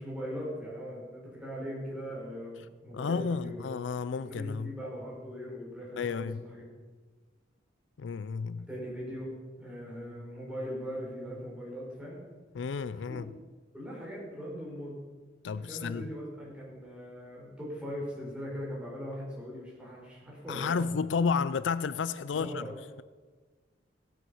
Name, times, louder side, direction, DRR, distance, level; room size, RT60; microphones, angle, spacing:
voice 1, 0.0-3.6 4.2-6.6 8.7-9.3 9.6-12.2 12.9-13.2 13.7-15.0 15.5-20.8 22.3-22.7, equal, 5° right, -5 dB, 4.9 m, -40 dB
voice 2, 2.9-4.7 6.0-6.4 8.0-8.7 12.5-13.2 15.4-16.1 20.5-22.6, left 5 dB, 70° left, 15 dB, 0.4 m, -31 dB
16.5 x 9.2 x 5.5 m, 1.4 s
head